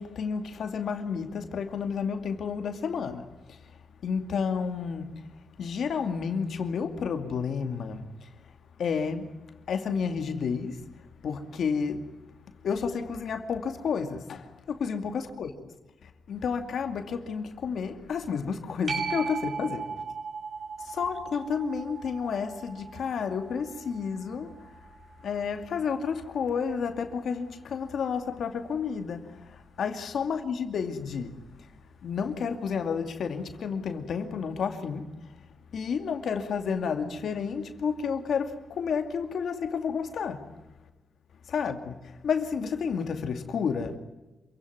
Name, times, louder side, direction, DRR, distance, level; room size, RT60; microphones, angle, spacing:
voice 1, 0.0-3.6 4.0-5.1 5.6-8.3 8.8-9.3 9.7-10.8 11.2-12.1 12.6-15.5 16.0-19.9 20.8-24.5 25.2-31.4 32.0-35.1 35.7-40.5 41.5-44.0, left 6 dB, 70° left, 2.5 m, -31 dB
sound 1, 18.9-26.0 31.6-31.7, right 5 dB, 45° right, 6.2 m, -38 dB
27.5 x 16.5 x 9.5 m
cardioid pair, 80°, 0 cm